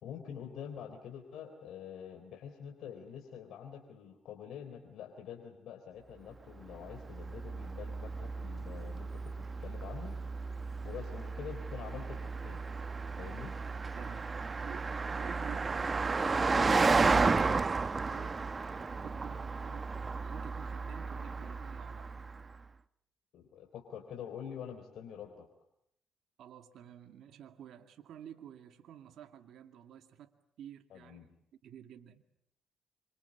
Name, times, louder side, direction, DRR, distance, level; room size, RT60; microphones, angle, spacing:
voice 1, 0.0-10.2 10.8-12.6 13.2-13.5 23.3-25.5 30.9-31.4, left 8 dB, 80° left, 3.5 m, -46 dB
Car passing by, 6.7-22.4, right 4 dB, 30° right, 1.2 m, -33 dB
voice 2, 13.8-17.7 18.1-19.9 20.2-22.5 26.4-31.3 31.6-32.2, right 10 dB, 75° right, 2.2 m, -52 dB
27.0 x 25.5 x 8.4 m
cardioid pair, 90°, 0 cm